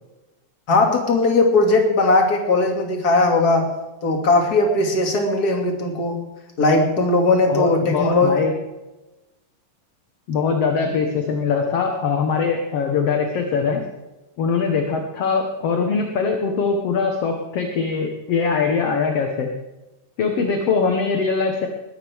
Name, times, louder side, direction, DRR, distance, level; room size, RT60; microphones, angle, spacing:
voice 1, 0.7-3.7 4.0-6.2 6.6-8.5, left 2 dB, 30° left, 2 dB, 2.5 m, -18 dB
voice 2, 7.5-8.5 10.3-13.8 14.4-19.5 20.2-21.7, left 5 dB, 55° left, 3 dB, 2.0 m, -22 dB
21.0 x 12.5 x 3.5 m, 1.1 s
omnidirectional pair, 3.8 m